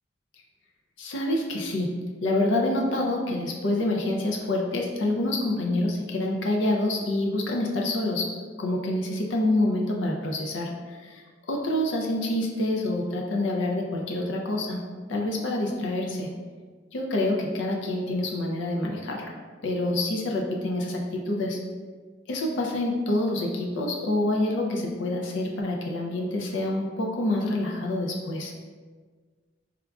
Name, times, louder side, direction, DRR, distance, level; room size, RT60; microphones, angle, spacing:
voice 1, 1.0-1.9 2.2-8.3 8.6-14.8 15.1-16.3 16.9-19.3 19.6-21.6 22.3-28.5, left 1 dB, 80° left, 0 dB, 0.5 m, -27 dB
4.9 x 2.3 x 2.3 m, 1.5 s
head